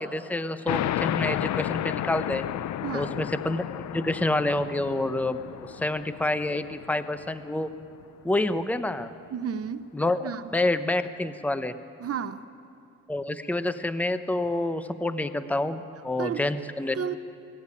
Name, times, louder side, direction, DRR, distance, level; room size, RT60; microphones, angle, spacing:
voice 1, 0.0-2.4 2.9-7.7 8.2-9.1 9.9-10.2 10.5-11.7 13.1-17.0, left 2 dB, 5° left, 11 dB, 1.0 m, -28 dB
sound 1, 0.7-7.8, left 12 dB, 65° left, 0.6 m, -32 dB
voice 2, 2.8-3.2 9.3-9.8 10.2-10.4 12.0-12.4 16.2-16.4 16.9-17.1, right 7 dB, 50° right, 12 dB, 0.9 m, -31 dB
23.5 x 17.5 x 10.0 m, 2.8 s
cardioid pair, 90°, 30 cm